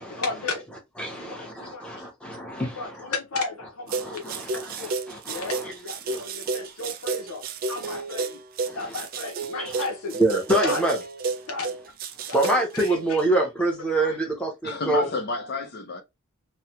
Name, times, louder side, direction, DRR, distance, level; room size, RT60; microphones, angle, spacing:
voice 1, 0.1-0.7 1.2-2.1 2.6-4.9 5.3-8.4 8.7-10.2 10.6-10.9 11.5-11.8 12.3-13.2 14.0-14.2, left 3 dB, 85° left, 0.8 m, -34 dB
voice 2, 1.0-3.1 4.0-5.6 6.1-6.2 7.9-8.0 8.7-8.8 9.6-9.8 10.2-11.0 12.3-15.0, right 1 dB, 5° left, 0.9 m, -26 dB
sound 1, 3.9-13.3, right 4 dB, 40° right, 0.3 m, -31 dB
voice 3, 14.6-16.0, left 3 dB, 50° left, 0.7 m, -30 dB
3.1 x 2.2 x 2.8 m
head